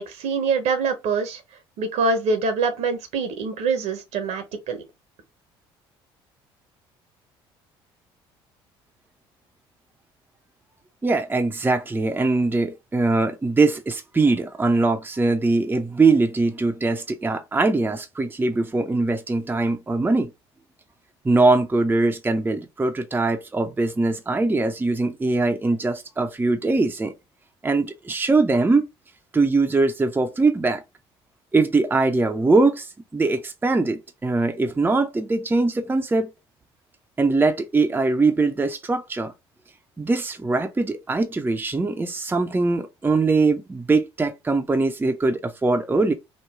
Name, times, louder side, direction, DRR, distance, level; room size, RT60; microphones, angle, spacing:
voice 1, 0.0-1.4 1.8-4.8, right 4 dB, 65° right, 0.9 m, -24 dB
voice 2, 11.0-20.3 21.2-27.1 27.6-28.9 29.3-30.8 31.5-36.3 37.2-39.3 40.0-46.1, right 3 dB, 15° right, 0.6 m, -22 dB
3.1 x 2.2 x 3.5 m
hypercardioid pair, 60°, 13 cm